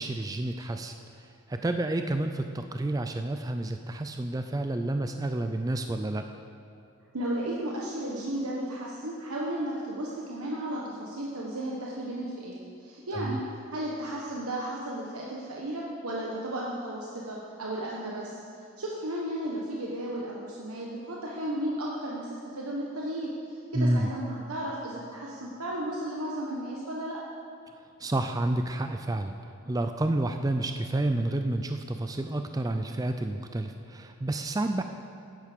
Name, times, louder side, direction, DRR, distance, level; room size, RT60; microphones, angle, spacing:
voice 1, 0.0-6.3 13.1-13.4 23.7-24.1 28.0-29.4 29.7-34.8, right 1 dB, 15° right, 7 dB, 0.3 m, -30 dB
voice 2, 7.1-13.4 13.7-18.4 18.8-27.2, right 1 dB, 85° right, -3 dB, 1.2 m, -34 dB
11.5 x 9.8 x 5.1 m, 2.5 s
head